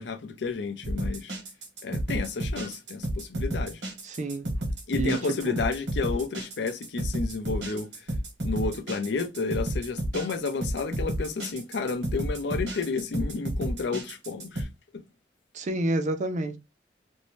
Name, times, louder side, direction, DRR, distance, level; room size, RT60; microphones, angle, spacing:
voice 1, 0.0-1.3 1.8-3.8 4.9-8.1 8.4-14.7, left 4 dB, 75° left, 0.5 m, -31 dB
sound 1, 0.8-14.6, right 1 dB, 80° right, 1.1 m, -31 dB
voice 2, 4.0-4.5 4.9-5.2 5.5-5.6 15.5-16.6, right 2 dB, 45° right, 0.4 m, -28 dB
2.6 x 2.1 x 3.0 m
head